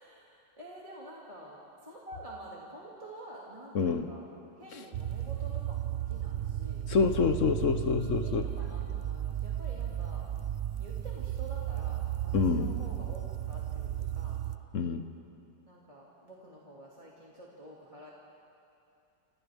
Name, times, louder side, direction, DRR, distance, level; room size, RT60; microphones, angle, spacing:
voice 1, 0.0-4.3 4.6-6.9 8.2-10.3 10.8-14.5 15.7-18.1, right 1 dB, 20° right, -6 dB, 2.4 m, -49 dB
voice 2, 3.7-4.1 6.9-8.5 12.3-12.7 14.7-15.0, left 5 dB, 50° left, 8 dB, 1.0 m, -27 dB
sound 1, 4.9-14.6, right 11 dB, 65° right, 0.7 m, -34 dB
28.0 x 27.5 x 3.5 m, 2.7 s
omnidirectional pair, 2.0 m